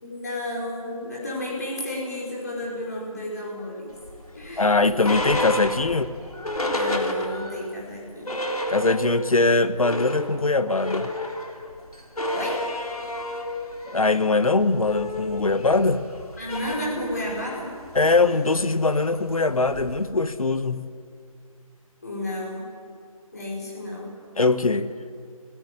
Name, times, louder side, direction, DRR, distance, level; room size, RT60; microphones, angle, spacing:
voice 1, 0.0-4.0 4.3-4.9 6.6-8.4 12.3-12.6 16.4-17.7 22.0-22.7 23.3-24.2, left 1 dB, 30° left, -4 dB, 5.0 m, -32 dB
sound 1, 4.0-7.7 8.0-8.1 8.3-9.3 9.7-20.1, left 1 dB, 85° left, 3.6 m, -31 dB
voice 2, 4.6-6.1 8.7-11.1 13.9-16.0 17.9-20.9 24.4-24.9, left 3 dB, 70° left, 12 dB, 1.3 m, -21 dB
24.0 x 17.0 x 9.9 m, 2.2 s
figure-of-eight pair, 180°, 18 cm